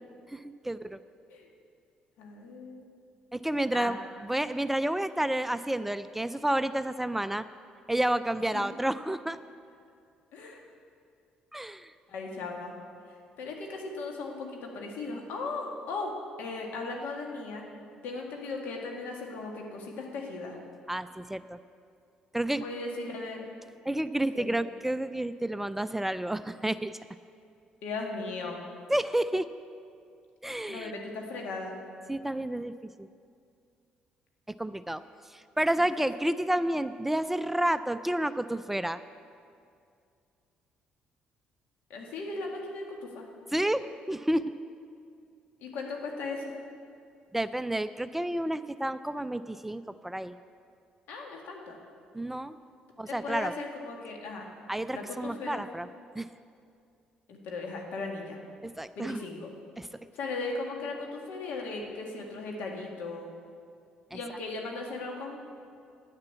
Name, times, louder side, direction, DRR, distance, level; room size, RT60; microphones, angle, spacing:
voice 1, 0.3-1.0 3.3-4.0 4.2-7.5 7.9-9.4 11.5-11.9 20.9-21.6 22.3-22.6 23.9-27.0 28.9-29.5 30.4-30.9 32.1-33.1 34.6-35.0 35.3-39.0 43.5-44.5 47.3-50.3 52.1-52.6 53.0-53.5 54.7-55.9 56.2-56.3 58.6-59.2 59.8-59.9 64.1-64.2, right 1 dB, 10° right, 13 dB, 0.3 m, -30 dB
voice 2, 2.2-2.9 3.7-3.9 8.3-8.6 10.3-10.6 12.1-12.7 13.4-17.6 18.0-20.6 22.6-23.5 24.3-24.5 27.8-28.6 30.7-31.7 36.0-36.1 41.9-43.3 45.6-46.5 51.1-51.8 53.0-54.5 54.9-55.6 57.3-58.4 58.9-59.5 60.1-63.3 64.1-65.4, left 3 dB, 80° left, 1 dB, 1.8 m, -37 dB
10.0 x 6.7 x 8.1 m, 2.3 s
supercardioid pair, 80°, 3 cm